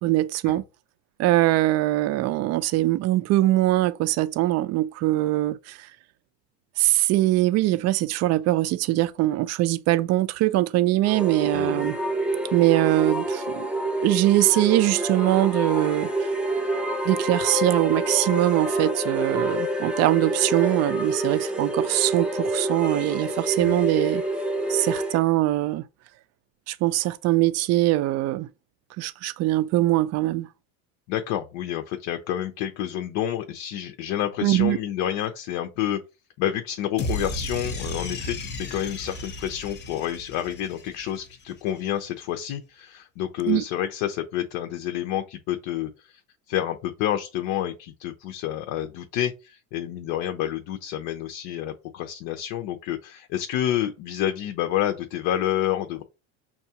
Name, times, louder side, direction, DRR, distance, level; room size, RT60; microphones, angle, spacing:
voice 1, 0.0-0.6 1.2-5.9 6.8-12.0 12.5-13.7 14.0-16.3 17.0-24.2 24.7-25.8 26.7-28.5 29.0-30.5 34.4-34.8 43.5-43.6, right 16 dB, 45° right, 0.4 m, -22 dB
sound 1, 11.0-25.2, right 1 dB, 5° right, 0.6 m, -27 dB
voice 2, 11.5-11.9 23.6-23.8 31.1-36.0 36.4-46.2 46.5-56.0, left 11 dB, 65° left, 0.7 m, -29 dB
sound 2, 37.0-41.3, left 1 dB, 30° left, 0.7 m, -34 dB
5.9 x 2.4 x 2.8 m
supercardioid pair, 120°, 35 cm